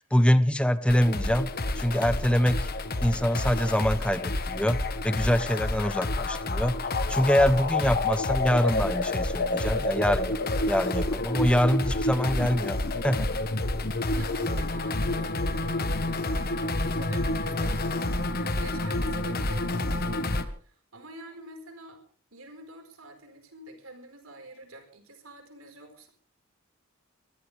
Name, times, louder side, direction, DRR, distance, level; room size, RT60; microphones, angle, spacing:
voice 1, 0.0-1.5 1.8-2.7 3.0-6.8 7.1-10.4 10.7-12.8 13.0-13.3, equal, 5° left, 0.8 m, -24 dB
sound 1, 0.9-20.4, left 2 dB, 45° left, 1.3 m, -29 dB
voice 2, 11.3-11.9 14.2-16.6 16.9-22.0 22.3-26.1, right 1 dB, 80° right, 4.8 m, -47 dB
23.5 x 16.5 x 3.4 m
head